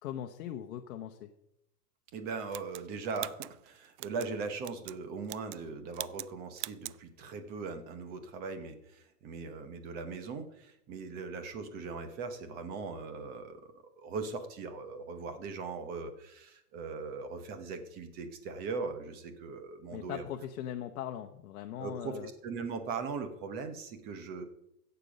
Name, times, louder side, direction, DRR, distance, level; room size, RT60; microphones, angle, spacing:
voice 1, 0.0-1.3 19.9-22.3, left 10 dB, 65° left, 6 dB, 1.0 m, -40 dB
voice 2, 2.1-20.2 21.8-24.4, right 4 dB, 20° right, 9 dB, 0.9 m, -40 dB
sound 1, 2.5-4.3 4.6-5.0 5.2-5.7 5.9-6.3 6.6-7.0, right 16 dB, 75° right, 0.5 m, -42 dB
16.0 x 6.9 x 5.2 m, 0.82 s
supercardioid pair, 165°, 47 cm